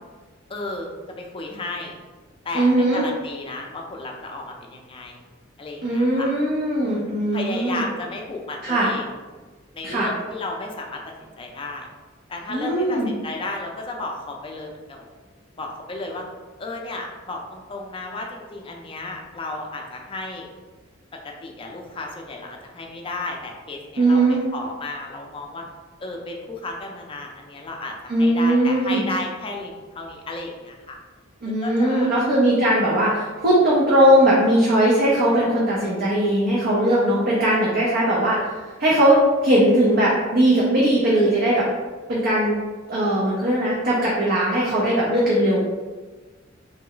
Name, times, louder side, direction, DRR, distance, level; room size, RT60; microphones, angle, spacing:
voice 1, 0.5-1.9 2.4-5.2 5.6-6.3 6.8-7.1 7.3-9.0 9.7-11.9 12.3-15.0 15.6-16.2 16.6-20.5 21.2-24.2 24.5-25.6 26.0-31.0 31.6-32.2, left 2 dB, 25° left, 1 dB, 0.4 m, -33 dB
voice 2, 2.5-3.0 5.8-7.8 8.6-8.9 9.8-10.1 12.5-13.1 24.0-24.4 28.1-29.0 31.4-41.6 42.1-42.6 42.9-45.6, right 1 dB, 50° right, -5 dB, 0.6 m, -19 dB
3.2 x 2.0 x 3.7 m, 1.3 s
head